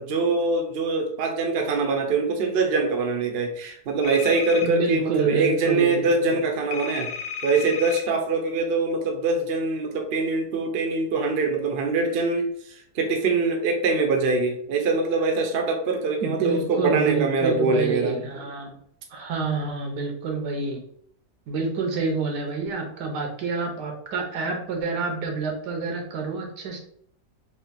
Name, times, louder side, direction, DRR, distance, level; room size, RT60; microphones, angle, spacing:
voice 1, 0.0-7.1 7.4-12.5 12.9-18.1, right 3 dB, 55° right, 3 dB, 0.7 m, -23 dB
sound 1, 4.0-4.7 6.7-8.0, left 6 dB, 70° left, 0.9 m, -33 dB
voice 2, 4.6-6.4 16.2-18.8 19.1-20.8 21.5-26.8, right 4 dB, 80° right, 3 dB, 1.5 m, -28 dB
3.6 x 2.5 x 4.0 m, 0.65 s
omnidirectional pair, 1.8 m